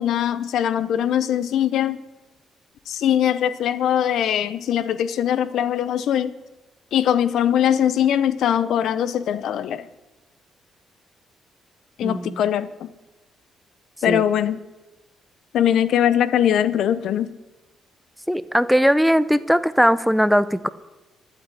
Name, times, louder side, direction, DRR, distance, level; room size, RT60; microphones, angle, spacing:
voice 1, 0.0-2.0 2.9-6.3 6.9-9.9 12.0-12.9 14.0-14.6 15.5-17.3, left 10 dB, 75° left, 15 dB, 0.8 m, -21 dB
voice 2, 12.0-12.4 14.1-14.2 18.3-20.7, equal, ahead, 16 dB, 0.6 m, -19 dB
12.0 x 8.6 x 9.7 m, 1.1 s
cardioid pair, 90°, 0 cm